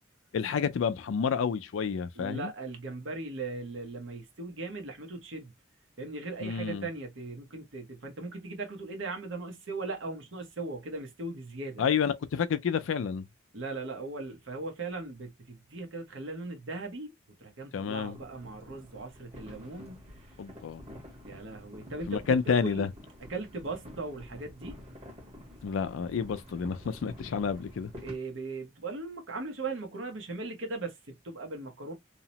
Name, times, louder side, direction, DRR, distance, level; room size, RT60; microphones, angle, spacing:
voice 1, 0.3-2.5 6.4-6.9 11.8-13.2 17.7-18.2 20.4-20.8 22.1-22.9 25.6-27.9, left 6 dB, 75° left, 0.4 m, -29 dB
voice 2, 2.1-5.5 6.0-11.8 13.5-17.1 17.4-20.1 21.2-22.9 23.3-24.8 28.0-31.9, right 3 dB, 70° right, 0.8 m, -38 dB
sound 1, 17.9-28.2, equal, 35° right, 1.1 m, -49 dB
2.8 x 2.0 x 2.7 m
head